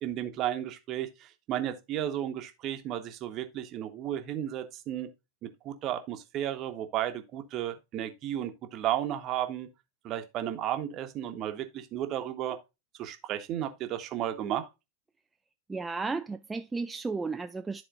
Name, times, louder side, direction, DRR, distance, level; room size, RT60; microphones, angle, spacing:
voice 1, 0.0-5.1 5.4-9.7 10.0-12.6 13.0-14.7, right 11 dB, 35° right, 1.1 m, -33 dB
voice 2, 15.7-17.8, right 4 dB, 10° right, 0.3 m, -33 dB
12.5 x 4.2 x 2.4 m
figure-of-eight pair, 90°, 0 cm